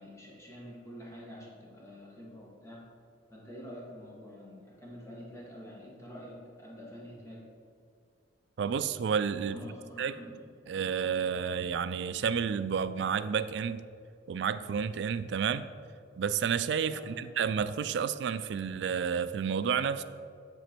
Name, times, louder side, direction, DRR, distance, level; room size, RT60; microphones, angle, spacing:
voice 1, 0.0-2.8 3.3-7.4 9.5-10.4 16.9-17.3, equal, 15° left, -4 dB, 1.4 m, -47 dB
voice 2, 8.6-9.6 10.0-10.2 10.7-13.8 14.3-15.7 16.2-20.0, right 7 dB, 60° right, 13 dB, 0.3 m, -30 dB
9.6 x 4.1 x 4.5 m, 2.3 s
head